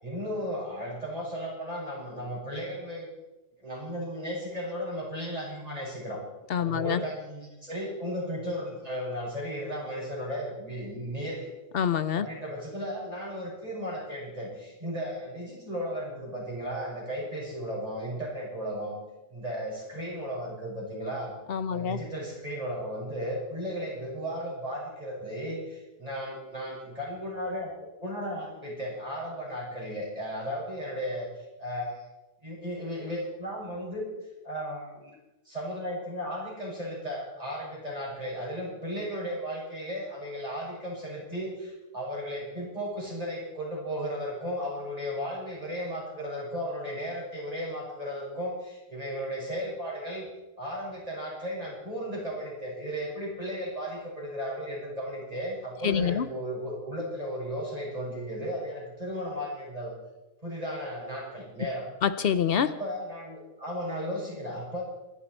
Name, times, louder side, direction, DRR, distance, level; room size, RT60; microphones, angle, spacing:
voice 1, 0.0-3.1 3.6-6.2 6.6-11.5 12.2-19.0 19.3-21.4 21.7-27.7 28.0-32.0 32.4-34.1 34.4-35.1 35.4-50.3 50.6-60.0 60.4-61.9 62.6-64.8, equal, 40° right, -4 dB, 6.2 m, -35 dB
voice 2, 6.5-7.0 11.7-12.3 21.5-22.0 55.8-56.3 62.0-62.7, left 8 dB, 70° left, 13 dB, 0.9 m, -26 dB
24.5 x 11.0 x 4.4 m, 1.0 s
omnidirectional pair, 1.0 m